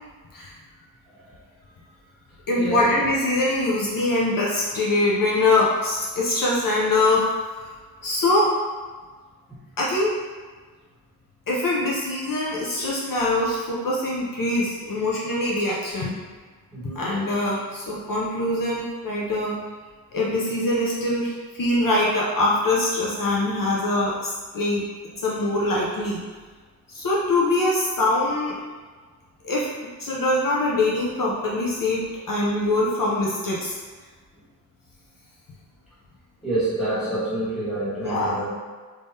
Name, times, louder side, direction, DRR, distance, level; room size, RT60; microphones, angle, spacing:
voice 1, 1.1-1.4 2.5-3.0 9.5-9.6 16.7-17.1 36.4-38.5, right 1 dB, ahead, -12 dB, 1.5 m, -28 dB
voice 2, 2.5-7.3 8.0-8.5 9.8-10.2 11.5-16.2 17.0-19.6 20.1-24.9 25.2-26.2 26.9-28.5 29.4-29.7 30.0-33.7 38.0-38.4, left 2 dB, 60° left, -5 dB, 0.7 m, -23 dB
3.6 x 3.3 x 2.7 m, 1.4 s
wide cardioid pair, 155°, 37 cm